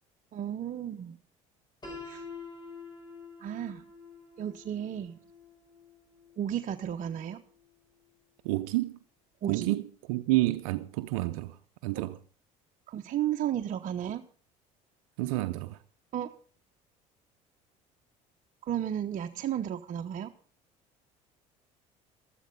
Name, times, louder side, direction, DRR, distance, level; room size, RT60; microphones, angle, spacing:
voice 1, 0.3-1.2 2.0-2.2 3.4-3.8 4.4-5.2 6.4-7.4 9.4-9.7 11.9-12.1 12.9-14.3 16.1-16.3 18.6-20.3, right 10 dB, 50° right, 1.0 m, -33 dB
Piano, 1.8-7.7, left 4 dB, 25° left, 6.8 m, -48 dB
voice 2, 8.4-9.0 9.5-12.2 15.2-15.8, right 18 dB, 85° right, 0.7 m, -29 dB
13.5 x 13.5 x 5.3 m
supercardioid pair, 80°, 17 cm